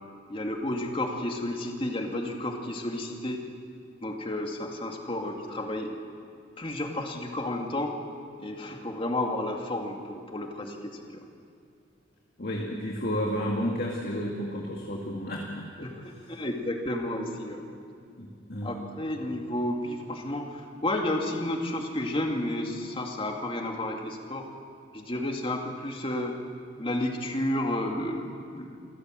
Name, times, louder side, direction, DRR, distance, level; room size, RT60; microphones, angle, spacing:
voice 1, 0.3-3.4 4.0-5.9 6.6-7.9 8.4-11.2 15.8-17.7 18.6-24.5 24.9-26.3 26.8-28.7, left 1 dB, 30° left, 2 dB, 2.3 m, -31 dB
voice 2, 12.4-15.5 15.8-15.9 18.2-18.7, equal, 50° left, -1 dB, 2.2 m, -31 dB
27.5 x 15.0 x 7.7 m, 2.4 s
head